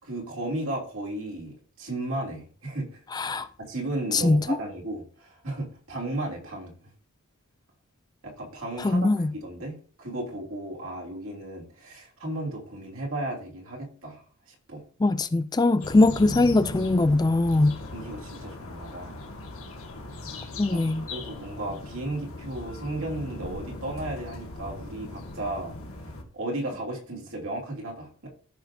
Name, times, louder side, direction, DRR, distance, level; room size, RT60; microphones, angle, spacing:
voice 1, 0.0-3.0 3.6-6.8 8.2-9.1 9.3-14.8 17.9-19.2 20.7-25.7 26.3-28.3, right 1 dB, 70° right, 3.0 m, -35 dB
voice 2, 3.1-3.5 4.1-4.6 8.8-9.3 15.0-17.8 20.6-21.1, left 2 dB, 20° left, 0.3 m, -21 dB
sound 1, 15.8-26.2, left 2 dB, 70° left, 1.8 m, -39 dB
14.5 x 6.0 x 2.7 m
head